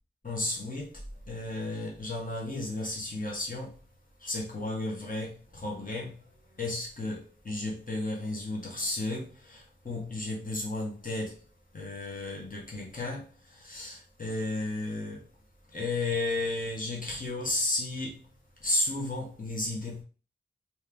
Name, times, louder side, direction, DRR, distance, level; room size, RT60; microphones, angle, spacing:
voice 1, 0.2-3.8 4.2-11.4 11.7-15.3 15.7-18.3 18.6-20.0, left 2 dB, 45° left, 1.5 m, -33 dB
3.4 x 3.0 x 3.4 m
cardioid pair, 40°, 19 cm